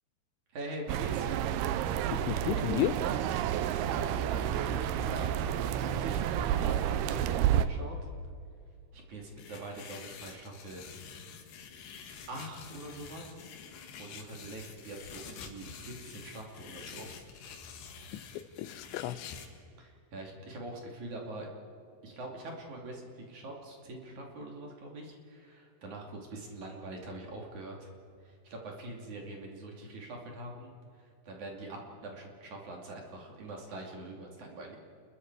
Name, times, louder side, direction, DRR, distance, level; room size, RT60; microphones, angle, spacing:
voice 1, 0.5-1.4 3.9-8.0 8.9-10.8 12.3-13.5 14.0-17.1 19.8-21.5 22.0-27.9 28.2-34.8, right 2 dB, 45° right, 0 dB, 3.7 m, -44 dB
sound 1, 0.9-7.7, right 10 dB, 80° right, 2.5 m, -30 dB
voice 2, 2.1-3.3 18.1-18.2 18.6-19.4, left 13 dB, 90° left, 14 dB, 3.1 m, -33 dB
sound 2, 9.4-19.5, left 6 dB, 75° left, 3.8 m, -48 dB
29.5 x 22.0 x 4.8 m, 2.5 s
omnidirectional pair, 5.1 m